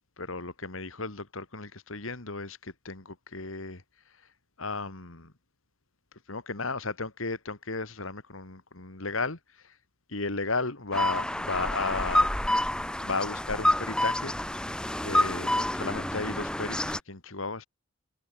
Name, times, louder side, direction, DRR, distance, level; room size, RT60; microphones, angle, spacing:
voice 1, 0.2-3.8 4.6-5.3 6.3-9.8 10.1-12.4 13.0-14.3 15.0-17.7, left 3 dB, 75° left, 2.4 m, -34 dB
sound 1, 10.9-17.0, left 1 dB, 5° left, 1.0 m, -28 dB
head